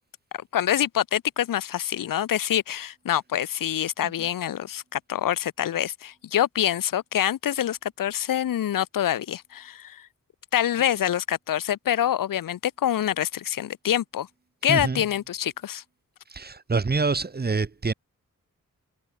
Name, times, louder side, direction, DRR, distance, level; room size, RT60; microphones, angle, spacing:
voice 1, 0.5-10.1 10.5-14.3 14.6-15.8, left 11 dB, 70° left, 0.6 m, -26 dB
voice 2, 14.7-15.0 16.3-17.9, right 4 dB, 30° right, 1.0 m, -26 dB
cardioid pair, 65°, 34 cm